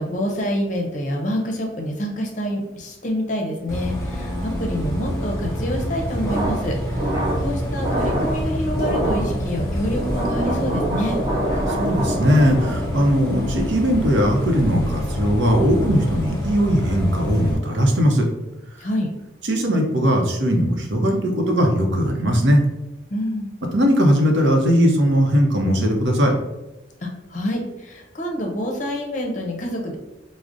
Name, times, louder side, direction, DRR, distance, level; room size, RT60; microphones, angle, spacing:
voice 1, 0.0-7.1 7.4-11.2 18.8-19.1 23.1-23.5 27.0-30.0, equal, 40° left, 1 dB, 0.6 m, -27 dB
Bus, 3.7-17.5, equal, 15° left, 0.9 m, -27 dB
sound 1, 6.2-13.0, right 1 dB, 20° right, 0.6 m, -26 dB
voice 2, 11.7-18.3 19.4-22.6 23.7-26.4, equal, 80° right, 1 dB, 0.7 m, -19 dB
4.8 x 2.1 x 2.5 m, 1.0 s
head